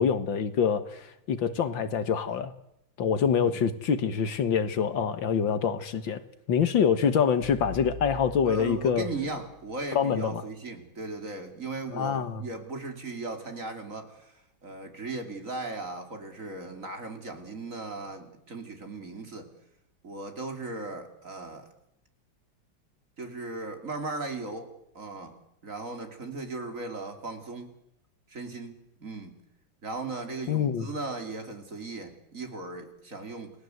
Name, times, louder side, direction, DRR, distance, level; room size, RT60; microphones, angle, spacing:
voice 1, 0.0-2.5 3.0-6.2 6.5-9.1 10.0-10.4 11.9-12.4 30.5-30.9, left 7 dB, 70° left, 2.1 m, -25 dB
sound 1, 7.4-9.7, left 4 dB, 40° left, 8.5 m, -43 dB
voice 2, 8.4-19.5 20.0-21.7 23.2-24.7 24.9-25.4 25.6-27.7 28.3-29.3 29.8-33.5, right 3 dB, 40° right, 3.5 m, -37 dB
30.0 x 19.0 x 7.9 m
omnidirectional pair, 2.2 m